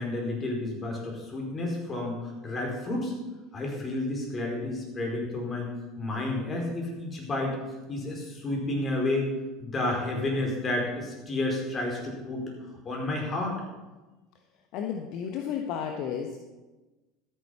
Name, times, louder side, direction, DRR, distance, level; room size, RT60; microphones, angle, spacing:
voice 1, 0.0-3.1 3.5-5.7 6.0-7.6 7.9-9.3 9.6-12.5 12.8-13.6, left 2 dB, 30° left, 0 dB, 4.7 m, -31 dB
voice 2, 14.7-16.4, left 8 dB, 55° left, 4 dB, 1.1 m, -32 dB
13.0 x 9.5 x 5.8 m, 1.2 s
figure-of-eight pair, 70°, 0 cm